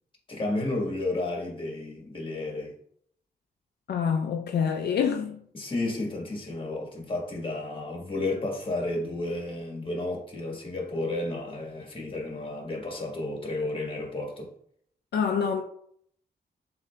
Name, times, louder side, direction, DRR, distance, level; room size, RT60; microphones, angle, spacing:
voice 1, 0.3-2.8 5.5-14.5, left 2 dB, 30° left, 1.3 m, -32 dB
voice 2, 3.9-5.4 15.1-15.6, left 7 dB, 75° left, 0.4 m, -26 dB
7.2 x 2.6 x 2.2 m
wide cardioid pair, 110°, 17 cm